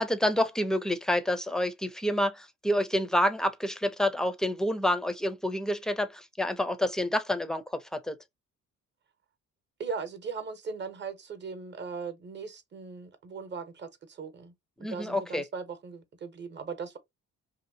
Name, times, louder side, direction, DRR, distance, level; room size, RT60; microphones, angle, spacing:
voice 1, 0.0-8.2 14.8-15.4, left 1 dB, ahead, 0.5 m, -28 dB
voice 2, 9.8-14.5 14.9-17.0, right 5 dB, 35° right, 0.8 m, -38 dB
2.7 x 2.6 x 2.6 m
cardioid pair, 90°, 30 cm